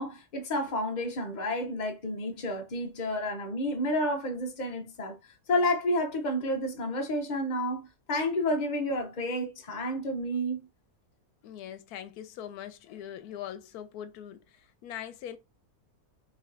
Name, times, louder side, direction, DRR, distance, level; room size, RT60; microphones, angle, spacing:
voice 1, 0.0-5.2 5.5-10.7, left 1 dB, 45° left, 0.6 m, -30 dB
voice 2, 11.4-15.4, left 10 dB, 80° left, 1.1 m, -42 dB
4.3 x 3.1 x 2.5 m
omnidirectional pair, 1.6 m